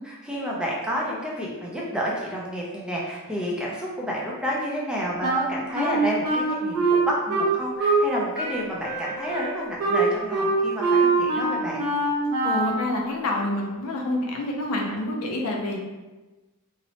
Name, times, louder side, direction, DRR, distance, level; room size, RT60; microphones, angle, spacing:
voice 1, 0.0-11.9, equal, 5° right, -4 dB, 0.4 m, -30 dB
Wind instrument woodwind instrument, 5.2-8.1 8.3-12.9, right 3 dB, 85° right, 0.9 m, -23 dB
voice 2, 12.4-15.8, left 1 dB, 70° left, 1 dB, 0.5 m, -27 dB
2.8 x 2.0 x 2.7 m, 1.2 s
head